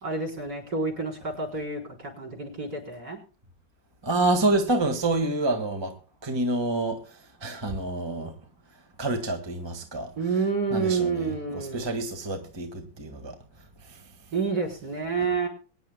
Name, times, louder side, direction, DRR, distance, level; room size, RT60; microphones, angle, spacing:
voice 1, 0.0-3.2 10.2-11.9 14.3-15.5, right 4 dB, 50° right, 4.8 m, -29 dB
voice 2, 4.0-5.9 6.2-8.3 9.0-10.1 10.7-13.4 13.9-14.0, right 2 dB, 15° right, 1.6 m, -28 dB
23.5 x 10.5 x 2.2 m
omnidirectional pair, 2.2 m